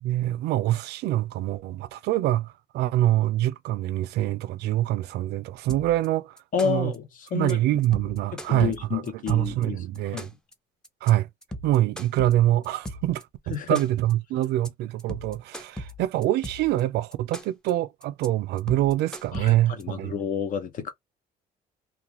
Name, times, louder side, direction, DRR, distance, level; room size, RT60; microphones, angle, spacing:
voice 1, 0.0-6.3 6.6-6.9 7.3-10.3 11.0-11.3 11.6-20.1, right 14 dB, 75° right, 0.4 m, -25 dB
sound 1, 5.7-6.1 6.4-7.0 7.3-7.5 7.8-9.6 10.0-10.5 10.8-11.1 11.4-13.2 13.5-14.1 14.4-14.7 15.0-16.8 17.1-17.7 18.0-18.3 18.6-19.8, equal, 5° left, 0.5 m, -38 dB
voice 2, 6.5-7.0 7.3-7.6 8.3-10.3 13.5-13.8 19.3-20.9, left 7 dB, 50° left, 0.7 m, -30 dB
2.4 x 2.3 x 2.9 m
cardioid pair, 110°, 17 cm